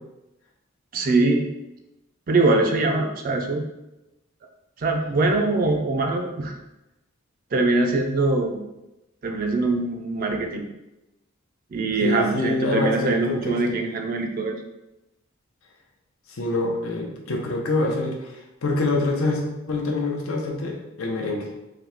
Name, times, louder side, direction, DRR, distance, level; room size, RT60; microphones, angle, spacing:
voice 1, 0.9-1.5 2.3-3.7 4.8-6.6 7.5-8.7 9.2-10.7 11.7-14.6, right 2 dB, 45° right, 3 dB, 0.4 m, -23 dB
voice 2, 12.0-13.8 16.3-21.5, left 2 dB, 80° left, 1 dB, 0.7 m, -26 dB
3.7 x 2.7 x 3.4 m, 0.96 s
head